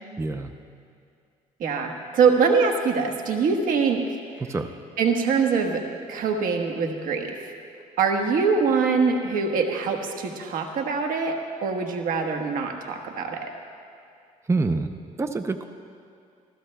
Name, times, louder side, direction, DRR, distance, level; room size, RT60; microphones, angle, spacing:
voice 1, 0.2-0.5 4.5-4.7 14.5-15.6, right 3 dB, 20° right, 7 dB, 0.6 m, -26 dB
voice 2, 1.6-4.0 5.0-5.8 6.1-7.5 8.0-11.3 11.6-13.4, right 5 dB, 70° right, 3 dB, 1.3 m, -23 dB
25.0 x 15.5 x 2.3 m, 2.4 s
cardioid pair, 90°, 15 cm